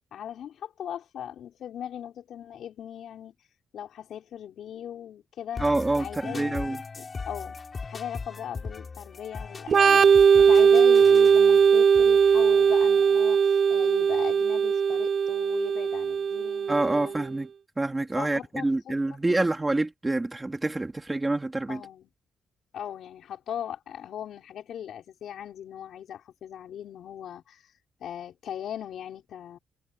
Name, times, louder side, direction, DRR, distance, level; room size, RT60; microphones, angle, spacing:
voice 1, 0.1-3.3 3.7-5.7 6.0-6.5 7.0-17.2 18.2-18.9 19.3-19.4 21.7-22.1 22.7-27.6 28.0-29.6, left 9 dB, 65° left, 6.1 m, -39 dB
sound 1, 5.5-13.4, left 4 dB, 30° left, 5.1 m, -40 dB
voice 2, 5.6-6.8 16.7-17.5 17.8-21.8, right 2 dB, 15° right, 2.6 m, -27 dB
Organ, 9.7-17.2, right 6 dB, 40° right, 0.5 m, -19 dB
cardioid pair, 140°, 0 cm